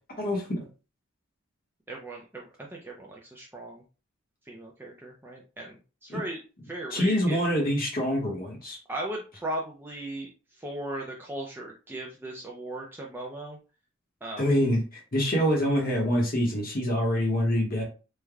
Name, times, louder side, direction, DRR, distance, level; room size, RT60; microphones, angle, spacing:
voice 1, 0.2-0.7 6.1-6.2 6.9-8.8 14.4-17.8, equal, 45° left, -1 dB, 0.9 m, -25 dB
voice 2, 1.9-3.8 4.5-6.4 6.7-7.4 8.9-13.6 14.2-14.5, right 1 dB, 10° right, -2 dB, 0.4 m, -37 dB
3.2 x 2.1 x 3.5 m, 0.34 s
head